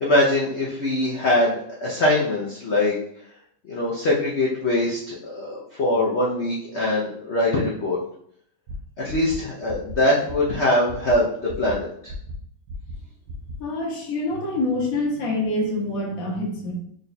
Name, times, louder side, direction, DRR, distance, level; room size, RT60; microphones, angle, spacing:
voice 1, 0.0-3.0 3.6-8.0 9.0-11.3 11.6-12.1, left 1 dB, 70° left, -5 dB, 0.6 m, -22 dB
sound 1, 8.7-8.8 9.1-9.4 9.7-9.9 10.3-10.5 10.9-11.1 11.5-11.7 12.1-12.3 12.7-12.9 13.3-13.5, left 1 dB, 75° right, 0.8 m, -35 dB
voice 2, 13.6-16.7, left 2 dB, 55° left, -1 dB, 1.2 m, -26 dB
3.8 x 2.2 x 3.9 m, 0.68 s
omnidirectional pair, 2.0 m